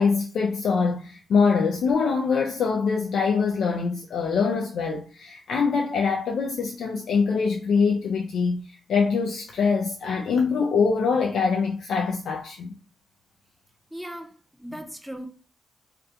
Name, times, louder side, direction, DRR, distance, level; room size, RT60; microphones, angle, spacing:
voice 1, 0.0-12.7, left 5 dB, 75° left, 0.3 m, -24 dB
voice 2, 13.9-14.3 14.6-15.3, equal, ahead, 0.5 m, -37 dB
2.4 x 2.2 x 2.7 m
cardioid pair, 100°, 0 cm